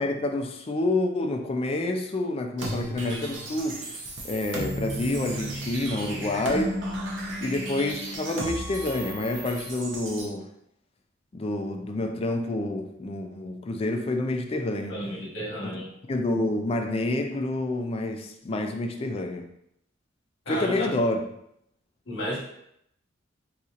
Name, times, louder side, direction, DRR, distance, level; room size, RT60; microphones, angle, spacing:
voice 1, 0.0-4.0 4.2-6.8 7.4-10.5 11.3-15.0 15.6-15.8 16.1-19.5 20.5-21.3, left 2 dB, 30° left, 4 dB, 0.4 m, -28 dB
sound 1, 2.6-10.3, right 1 dB, 65° right, 0.7 m, -34 dB
voice 2, 14.9-15.9 20.5-20.9 22.1-22.4, equal, 65° left, -5 dB, 1.2 m, -32 dB
3.9 x 2.9 x 2.4 m, 0.75 s
head